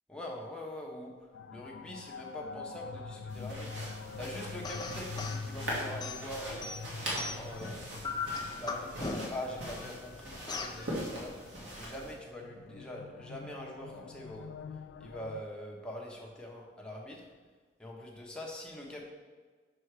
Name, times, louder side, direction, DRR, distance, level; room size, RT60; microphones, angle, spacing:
voice 1, 0.1-1.1 1.5-3.7 4.2-6.7 7.3-8.2 8.5-11.3 11.7-14.5 15.0-17.2 17.8-19.0, left 1 dB, 5° left, -2 dB, 1.1 m, -43 dB
sound 1, 1.3-15.4, left 5 dB, 85° left, 0.3 m, -45 dB
sound 2, 3.3-12.1, equal, 85° right, 2.0 m, -41 dB
sound 3, 4.6-5.4 6.0-7.6 8.0-9.5 10.5-10.8, left 4 dB, 25° left, 0.5 m, -38 dB
5.6 x 5.4 x 4.8 m, 1.4 s
head